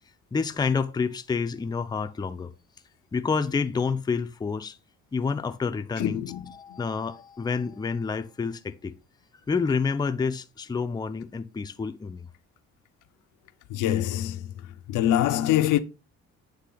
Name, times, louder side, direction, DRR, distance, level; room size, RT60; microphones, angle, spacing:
voice 1, 0.3-2.5 3.1-4.8 5.1-8.9 9.5-12.3, left 5 dB, 15° left, 0.4 m, -28 dB
voice 2, 6.0-6.5 6.7-6.8 13.7-14.5 14.9-15.8, left 12 dB, 85° left, 0.6 m, -24 dB
8.1 x 3.3 x 3.8 m
cardioid pair, 90°, 30 cm